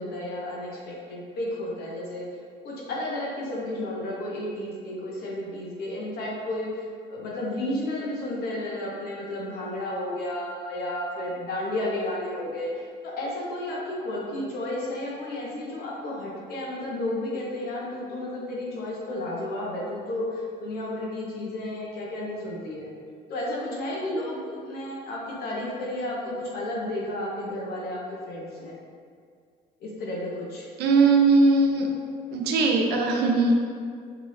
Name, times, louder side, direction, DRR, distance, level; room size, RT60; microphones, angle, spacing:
voice 1, 0.0-2.3 2.6-22.9 23.3-28.7 29.8-30.7, left 1 dB, 70° left, -4 dB, 1.2 m, -32 dB
voice 2, 30.8-31.9 32.3-33.6, right 3 dB, 80° right, 1 dB, 0.6 m, -20 dB
5.9 x 2.7 x 3.2 m, 2.1 s
cardioid pair, 110°, 17 cm